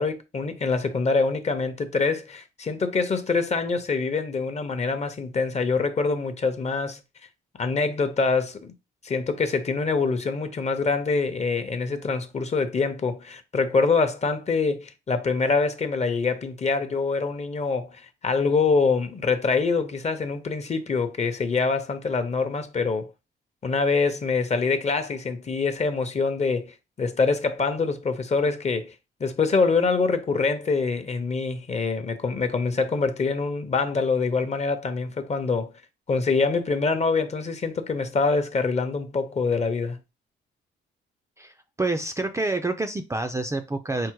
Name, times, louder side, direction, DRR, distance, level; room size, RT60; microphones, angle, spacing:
voice 1, 0.0-7.0 7.6-8.7 9.0-23.1 23.6-28.9 29.2-35.7 36.1-40.0, left 4 dB, 35° left, 0.7 m, -25 dB
voice 2, 41.8-44.1, right 2 dB, 15° right, 0.4 m, -27 dB
4.6 x 2.1 x 4.5 m
cardioid pair, 90°, 20 cm